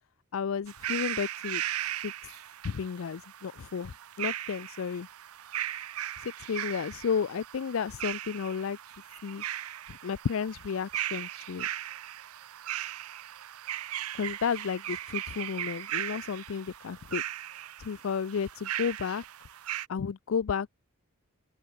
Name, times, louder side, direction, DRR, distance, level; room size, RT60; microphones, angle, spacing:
voice 1, 0.3-1.6 2.0-2.1 2.6-5.1 6.2-8.8 9.2-9.4 9.9-11.7 14.1-17.2 17.8-19.2 19.9-20.7, left 6 dB, 70° left, 0.4 m, -32 dB
sound 1, 0.7-19.9, right 12 dB, 90° right, 0.6 m, -38 dB
open air
head